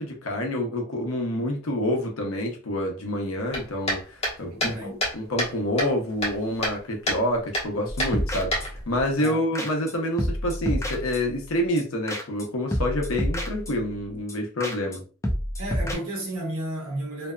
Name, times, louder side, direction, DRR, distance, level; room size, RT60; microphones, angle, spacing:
voice 1, 0.0-4.8 5.1-15.0, left 1 dB, 75° left, 0.7 m, -27 dB
sound 1, 3.5-5.5 5.8-6.8 7.1-7.2 7.5-7.7 8.0-9.0, equal, 30° left, 1.1 m, -27 dB
voice 2, 4.5-5.0 9.2-9.4 15.6-17.3, right 1 dB, 80° right, 1.0 m, -32 dB
sound 2, 7.9-8.9 9.2-9.3 9.6-9.9 10.2-11.4 11.8-11.9 12.1-12.5 12.7-13.9 14.3-14.4 14.6-15.0 15.2-16.0, equal, 15° left, 0.4 m, -29 dB
2.6 x 2.4 x 2.2 m
head